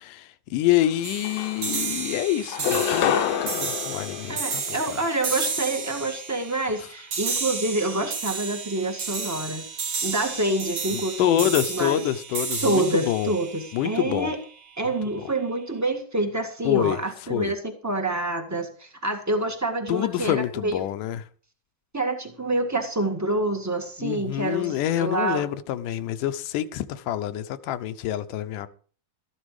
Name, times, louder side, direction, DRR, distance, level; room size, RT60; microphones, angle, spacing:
voice 1, 0.0-4.8 10.9-13.3 13.7-14.3 16.7-17.0 17.3-17.5 19.9-21.2 24.0-28.7, left 12 dB, 85° left, 2.4 m, -26 dB
sound 1, 0.8-0.9 1.2-2.0 2.5-5.1, left 9 dB, 70° left, 1.6 m, -27 dB
sound 2, 1.0-14.5, right 5 dB, 55° right, 3.2 m, -32 dB
voice 2, 4.3-9.7 10.0-12.0 12.3-14.4 14.8-20.8 21.9-25.5, right 2 dB, 10° right, 0.7 m, -27 dB
13.5 x 12.0 x 4.9 m
omnidirectional pair, 3.6 m